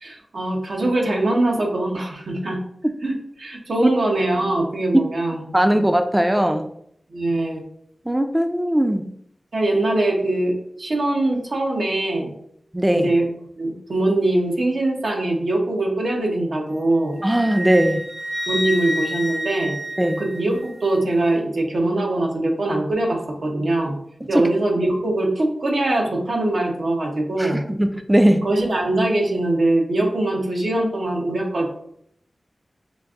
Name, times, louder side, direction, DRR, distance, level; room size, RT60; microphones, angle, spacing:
voice 1, 0.0-2.6 3.0-5.4 5.7-5.8 7.1-7.6 9.5-12.3 12.9-13.3 13.6-17.2 18.5-19.8 20.2-23.9 24.3-27.6 28.4-31.7, right 2 dB, 85° right, 0 dB, 0.8 m, -22 dB
voice 2, 5.5-6.7 8.1-9.1 12.7-13.1 17.2-18.1 20.0-20.2 24.2-24.5 27.4-28.5, right 1 dB, 15° right, 7 dB, 0.3 m, -19 dB
Wind instrument woodwind instrument, 17.2-20.7, equal, 70° right, 1.1 m, -28 dB
5.1 x 2.5 x 2.4 m, 0.69 s
cardioid pair, 50°, 0 cm